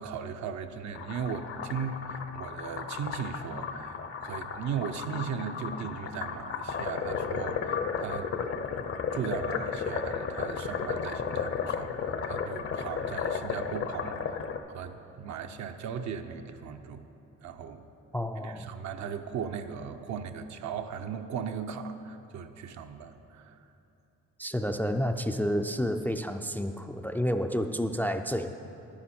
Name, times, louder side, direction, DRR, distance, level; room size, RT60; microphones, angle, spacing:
voice 1, 0.0-8.3 9.1-17.1 17.4-17.8 18.4-23.7, right 6 dB, 70° right, 7 dB, 0.7 m, -37 dB
sound 1, 0.9-14.6, left 6 dB, 50° left, 0.7 m, -34 dB
voice 2, 18.1-18.7 24.4-28.6, equal, 5° left, 6 dB, 0.3 m, -30 dB
10.5 x 9.7 x 4.3 m, 2.9 s
cardioid pair, 90°, 30 cm